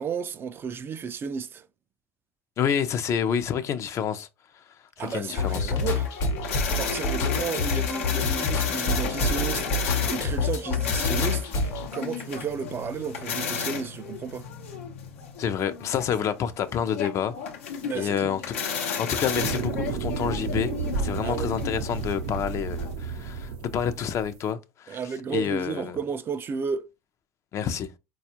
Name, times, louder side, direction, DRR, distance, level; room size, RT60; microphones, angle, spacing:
voice 1, 0.0-1.7 5.0-6.1 6.4-14.5 17.8-18.4 21.2-21.6 24.9-26.9, right 6 dB, 35° right, 0.3 m, -33 dB
voice 2, 2.6-4.3 4.5-4.6 5.0-5.7 15.4-17.4 17.6-18.6 19.0-20.7 21.0-25.0 25.3-26.0 27.5-27.9, left 8 dB, 45° left, 0.5 m, -28 dB
sound 1, 5.0-22.9, left 7 dB, 85° left, 0.7 m, -33 dB
sound 2, 5.4-11.9, left 3 dB, 65° left, 1.0 m, -27 dB
sound 3, 19.3-24.4, right 5 dB, 70° right, 0.6 m, -32 dB
4.0 x 2.3 x 2.8 m
hypercardioid pair, 80°, 7 cm